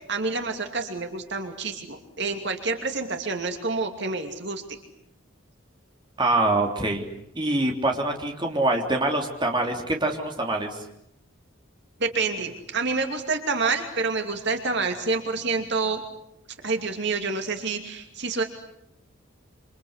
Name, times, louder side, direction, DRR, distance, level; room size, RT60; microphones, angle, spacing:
voice 1, 0.1-4.6 12.0-16.0 16.6-18.4, right 4 dB, 55° right, 5 dB, 2.7 m, -28 dB
voice 2, 6.2-7.0 7.4-10.8, right 2 dB, 20° right, 2 dB, 3.4 m, -24 dB
27.5 x 26.5 x 8.2 m, 0.78 s
head